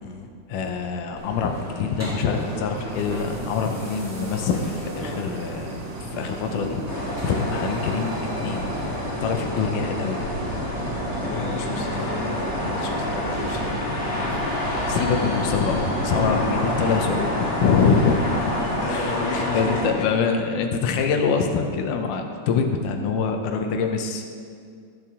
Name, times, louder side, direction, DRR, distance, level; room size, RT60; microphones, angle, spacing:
voice 1, 0.5-6.8 7.2-8.2 8.4-8.7 9.2-10.2 14.9-18.2 18.9-19.1 19.5-24.3, left 5 dB, 85° left, 4 dB, 2.3 m, -24 dB
sound 1, 1.1-18.7, equal, 10° right, 1.0 m, -35 dB
Cricket, 2.3-13.7, right 6 dB, 80° right, 2.2 m, -40 dB
sound 2, 6.9-19.9, left 1 dB, 30° left, 1.1 m, -28 dB
voice 2, 11.2-13.9 18.7-20.1, left 4 dB, 65° left, 1 dB, 1.9 m, -33 dB
16.0 x 6.8 x 3.6 m, 2.2 s
omnidirectional pair, 3.6 m